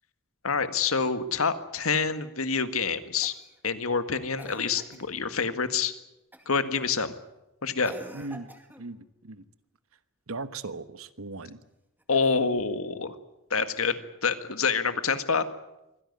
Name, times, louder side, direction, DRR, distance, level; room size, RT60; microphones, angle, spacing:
voice 1, 0.4-3.3 3.6-5.9 6.5-7.1 7.6-7.9 12.1-13.2 13.5-15.5, left 5 dB, 85° left, 10 dB, 1.8 m, -27 dB
Cough, 3.2-3.6 4.4-5.1 6.3-6.6 7.8-8.9 12.0-12.8 14.2-14.3, right 1 dB, 10° right, 2.2 m, -47 dB
voice 2, 8.1-8.5 8.8-9.4 10.3-11.6, right 3 dB, 85° right, 13 dB, 1.3 m, -38 dB
24.5 x 16.5 x 9.6 m, 0.92 s
head